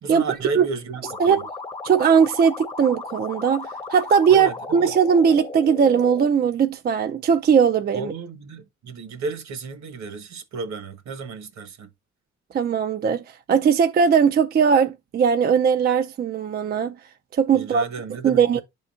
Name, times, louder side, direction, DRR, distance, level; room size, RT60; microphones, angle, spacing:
voice 1, 0.0-1.4 4.3-4.9 7.9-11.9 17.5-18.6, right 4 dB, 65° right, 1.2 m, -33 dB
sound 1, 1.0-6.3, left 3 dB, 20° left, 0.6 m, -35 dB
voice 2, 1.8-8.1 12.5-13.2 13.5-16.9 17.4-17.8 18.2-18.6, right 7 dB, 35° right, 0.4 m, -19 dB
11.0 x 3.8 x 2.4 m
cardioid pair, 90°, 30 cm